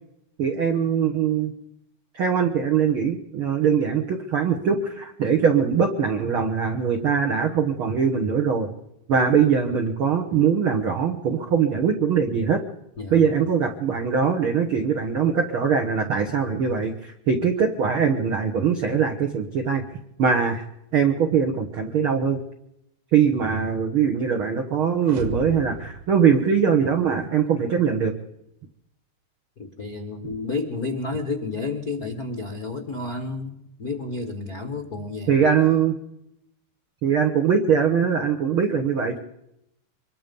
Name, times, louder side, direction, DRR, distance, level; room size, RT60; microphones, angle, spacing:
voice 1, 0.4-1.5 2.1-8.7 9.1-12.6 13.1-19.8 20.2-20.6 20.9-22.4 23.1-28.1 35.3-35.9 37.0-39.2, right 6 dB, 80° right, 4 dB, 1.1 m, -22 dB
voice 2, 13.0-13.4 29.6-35.5, left 3 dB, 75° left, 5 dB, 0.8 m, -31 dB
sound 1, 25.0-27.1, right 2 dB, 60° right, 2.8 m, -37 dB
24.5 x 22.0 x 5.4 m, 0.83 s
omnidirectional pair, 4.5 m